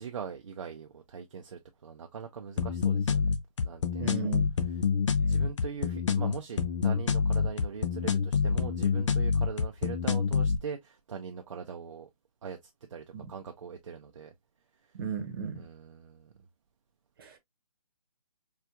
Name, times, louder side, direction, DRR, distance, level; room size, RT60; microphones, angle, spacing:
voice 1, 0.0-3.3 3.6-4.1 5.3-12.1 12.4-14.3 14.8-14.9 15.6-16.3, right 6 dB, 55° right, 0.5 m, -41 dB
sound 1, 2.6-10.6, left 5 dB, 50° left, 0.5 m, -27 dB
voice 2, 4.0-4.5 13.1-13.3 14.9-15.7 17.2-17.4, right 6 dB, 40° right, 0.9 m, -35 dB
4.4 x 2.4 x 2.3 m
hypercardioid pair, 160°, 20 cm